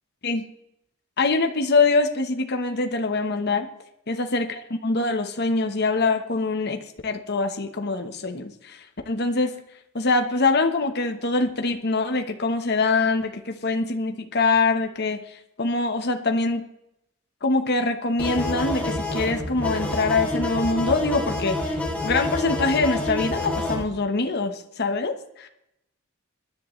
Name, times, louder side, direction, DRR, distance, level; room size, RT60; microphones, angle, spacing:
voice 1, 1.2-3.7 4.1-9.5 9.9-16.6 17.4-25.5, left 3 dB, 50° left, 5 dB, 1.1 m, -24 dB
sound 1, 18.2-23.8, left 2 dB, 5° left, 3.1 m, -27 dB
23.0 x 10.5 x 3.2 m, 0.83 s
head